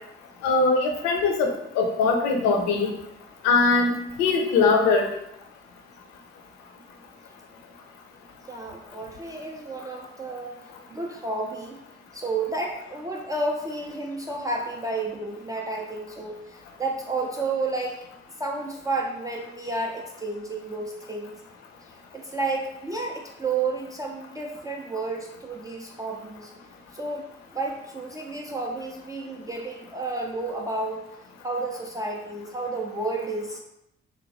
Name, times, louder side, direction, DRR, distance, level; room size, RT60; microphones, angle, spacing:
voice 1, 0.4-2.9 3.4-3.9 4.2-5.1, left 4 dB, 55° left, 3 dB, 0.6 m, -21 dB
voice 2, 8.5-10.5 10.9-11.8 12.1-18.0 18.4-21.4 22.1-26.5 26.9-27.2 27.5-31.1 31.4-33.6, right 3 dB, 10° right, -1 dB, 0.3 m, -31 dB
3.2 x 2.2 x 2.7 m, 0.81 s
figure-of-eight pair, 40°, 33 cm